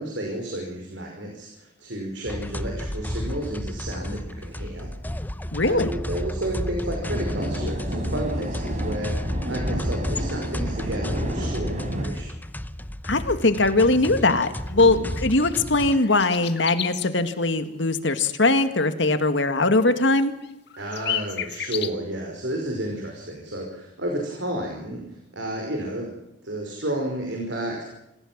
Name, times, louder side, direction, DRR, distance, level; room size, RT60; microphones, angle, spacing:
voice 1, 0.0-4.9 5.6-12.3 14.7-15.1 20.8-26.1 26.4-27.8, right 1 dB, 85° right, 2 dB, 5.2 m, -31 dB
sound 1, 2.3-16.0, left 1 dB, 10° left, 0.8 m, -32 dB
voice 2, 5.5-5.9 13.1-20.3, left 2 dB, 80° left, 9 dB, 2.0 m, -21 dB
sound 2, 7.0-12.0, equal, 40° right, 4.1 m, -30 dB
sound 3, 13.8-13.9 14.2-17.1 19.5-19.6 19.9-20.0 20.2-21.9, left 10 dB, 65° left, 1.9 m, -33 dB
27.0 x 16.0 x 7.5 m, 0.88 s
head